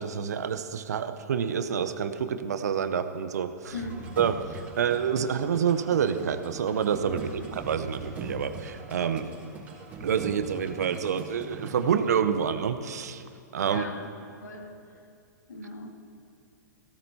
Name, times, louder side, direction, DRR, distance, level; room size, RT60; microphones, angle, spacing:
voice 1, 0.0-3.7 4.2-9.3 10.0-13.2 13.5-13.9, right 7 dB, 65° right, 10 dB, 0.8 m, -28 dB
voice 2, 3.7-4.1 7.1-7.6 13.7-14.1 14.4-14.8 15.5-15.9, left 2 dB, 75° left, 4 dB, 1.6 m, -39 dB
sound 1, 3.7-12.1, right 3 dB, 20° right, 4.0 m, -41 dB
18.0 x 17.0 x 2.8 m, 2.4 s
figure-of-eight pair, 110°, 9 cm